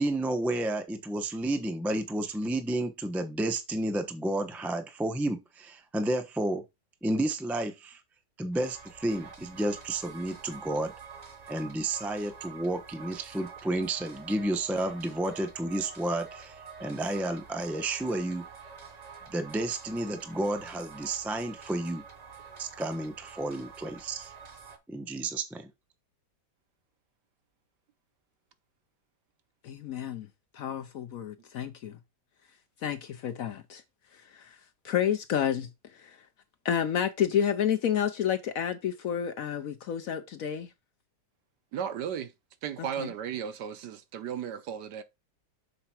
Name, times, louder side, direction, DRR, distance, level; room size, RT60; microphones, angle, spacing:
voice 1, 0.0-6.6 7.0-8.0 8.4-10.9 11.5-18.5 19.3-22.0 22.6-24.3 24.9-25.7, right 1 dB, ahead, 0.4 m, -31 dB
sound 1, 8.5-24.8, right 6 dB, 30° right, 0.8 m, -48 dB
voice 2, 29.6-30.3 30.5-32.0 32.8-33.8 34.1-34.6 34.8-36.2 36.6-40.7 43.0-43.1, left 9 dB, 65° left, 0.9 m, -30 dB
voice 3, 41.7-42.3 42.6-45.0, right 8 dB, 70° right, 1.3 m, -35 dB
6.8 x 4.5 x 4.3 m
omnidirectional pair, 1.9 m